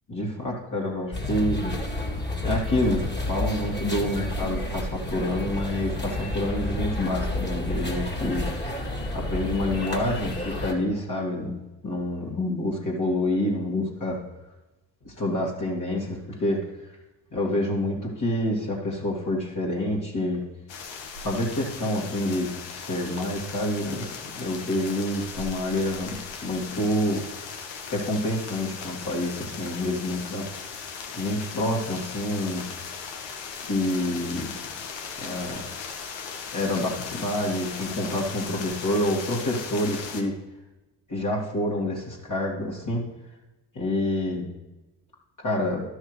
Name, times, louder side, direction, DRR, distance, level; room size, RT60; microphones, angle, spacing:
voice 1, 0.1-1.8 2.4-8.9 9.1-11.6 11.8-14.2 15.2-16.6 17.3-20.4 21.2-26.2 26.4-27.2 27.9-30.5 31.1-32.7 33.6-34.5 35.2-35.7 36.5-40.3 41.1-43.0 43.7-44.4 45.4-45.8, left 1 dB, 35° left, -4 dB, 2.4 m, -27 dB
sound 1, 1.1-10.7, left 1 dB, 20° left, 2.3 m, -30 dB
sound 2, 20.7-40.2, left 6 dB, 60° left, 1.3 m, -38 dB
12.5 x 6.4 x 3.3 m, 1.1 s
hypercardioid pair, 50°, 50 cm